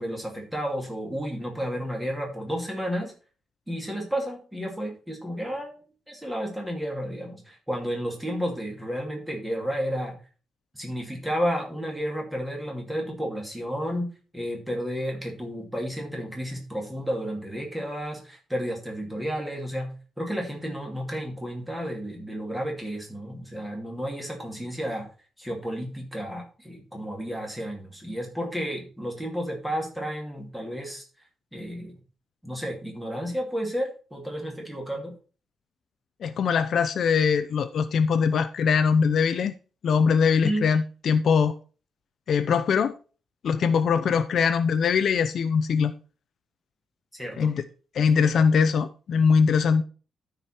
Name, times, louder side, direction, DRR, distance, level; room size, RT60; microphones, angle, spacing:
voice 1, 0.0-3.1 3.7-10.2 10.7-14.1 14.3-25.1 25.4-31.0 31.5-32.0 32.4-35.1 40.4-40.6 47.1-47.6 48.0-48.1 48.4-48.5, equal, 5° right, 0 dB, 2.5 m, -32 dB
voice 2, 36.2-39.5 39.8-41.6 42.3-42.9 43.4-45.9 47.4-47.6 47.9-49.8, left 6 dB, 55° left, 11 dB, 0.5 m, -22 dB
13.0 x 5.1 x 4.3 m, 0.36 s
wide cardioid pair, 175°, 0 cm